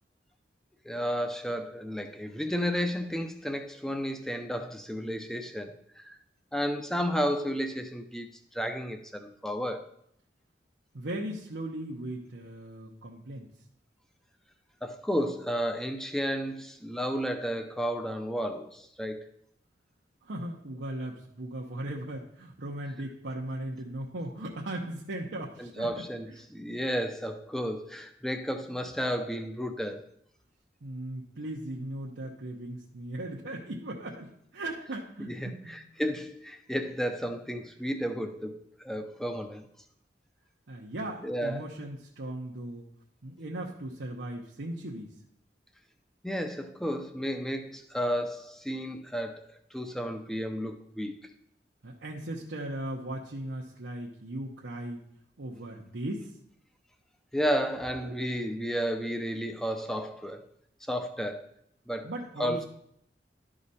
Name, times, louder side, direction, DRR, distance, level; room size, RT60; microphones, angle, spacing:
voice 1, 0.8-6.2 6.5-9.9 14.8-19.3 25.6-30.0 35.3-39.7 41.2-41.7 46.2-51.2 57.3-60.5 60.9-61.5 61.9-62.1 62.4-62.6, equal, 5° left, 0.6 m, -32 dB
voice 2, 10.9-13.5 20.2-26.0 30.8-35.8 40.7-42.8 43.2-45.1 51.8-55.0 55.4-56.3 62.0-62.7, right 1 dB, 85° right, 0.9 m, -38 dB
11.5 x 5.0 x 4.2 m
head